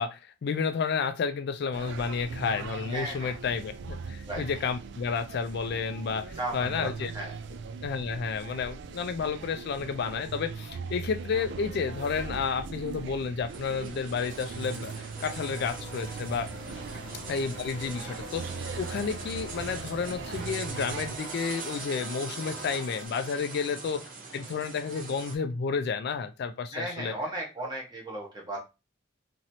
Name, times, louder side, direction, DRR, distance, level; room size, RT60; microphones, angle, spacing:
voice 1, 0.0-7.1 7.8-16.5 17.3-24.1 24.3-27.2, left 5 dB, 60° left, 10 dB, 0.3 m, -31 dB
sound 1, 1.7-21.2, right 4 dB, 65° right, 0.3 m, -40 dB
voice 2, 2.9-3.3 4.3-4.4 6.4-7.3 26.7-28.6, right 2 dB, 20° right, -1 dB, 1.1 m, -35 dB
sound 2, 13.5-25.4, right 4 dB, 45° right, 0.7 m, -42 dB
sound 3, 15.1-23.1, left 2 dB, 25° left, 1.1 m, -46 dB
3.0 x 2.8 x 2.7 m, 0.27 s
head